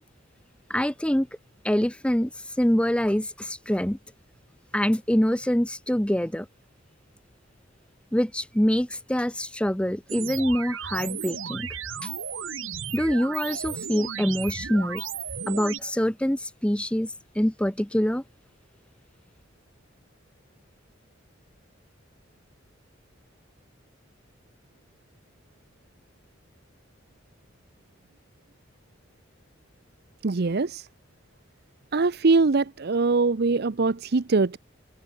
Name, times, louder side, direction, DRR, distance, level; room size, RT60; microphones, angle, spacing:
voice 1, 0.7-1.3 1.6-2.3 2.6-4.0 4.7-6.5 8.1-11.7 12.0-12.1 12.9-15.0 15.5-18.2, equal, 5° left, 0.9 m, -25 dB
sound 1, 10.1-15.8, right 7 dB, 85° right, 2.7 m, -34 dB
voice 2, 30.2-30.9 31.9-34.6, right 3 dB, 55° right, 0.7 m, -22 dB
head